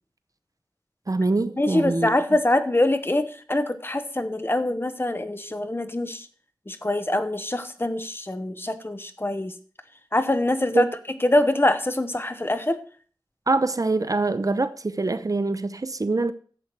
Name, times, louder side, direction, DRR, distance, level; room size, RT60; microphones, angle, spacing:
voice 1, 1.1-2.1 10.7-10.9 13.5-16.3, right 3 dB, 50° right, 0.7 m, -24 dB
voice 2, 1.6-6.3 6.7-9.5 10.1-10.9 11.2-12.8, left 1 dB, 30° left, 1.2 m, -24 dB
12.0 x 8.0 x 4.7 m
wide cardioid pair, 70°, 8 cm